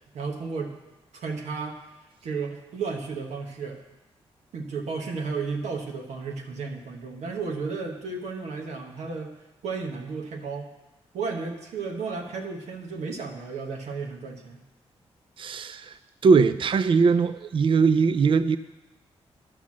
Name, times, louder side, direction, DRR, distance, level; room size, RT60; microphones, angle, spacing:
voice 1, 0.1-0.7 1.1-1.8 2.2-3.8 4.5-9.3 9.6-10.7 11.1-14.6, right 4 dB, 85° right, 2 dB, 1.3 m, -33 dB
voice 2, 15.4-15.9 16.2-18.6, right 5 dB, 50° right, 13 dB, 0.4 m, -20 dB
10.5 x 5.9 x 7.4 m, 1.1 s
cardioid pair, 70°, 11 cm